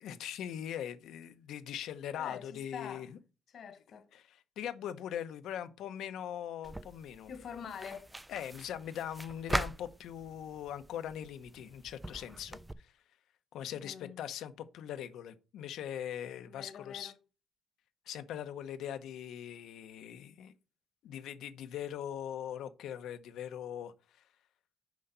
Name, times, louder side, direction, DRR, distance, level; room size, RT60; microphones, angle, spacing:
voice 1, 0.0-3.2 4.1-7.3 8.3-12.9 13.5-17.1 18.1-20.5 21.0-24.2, left 10 dB, 80° left, 0.9 m, -41 dB
voice 2, 2.2-3.1 3.5-4.1 7.3-8.1 13.7-14.2 16.5-17.1, left 7 dB, 55° left, 1.2 m, -45 dB
sound 1, 6.6-12.7, right 1 dB, 10° right, 0.4 m, -41 dB
6.3 x 5.5 x 5.5 m
cardioid pair, 150°, 0 cm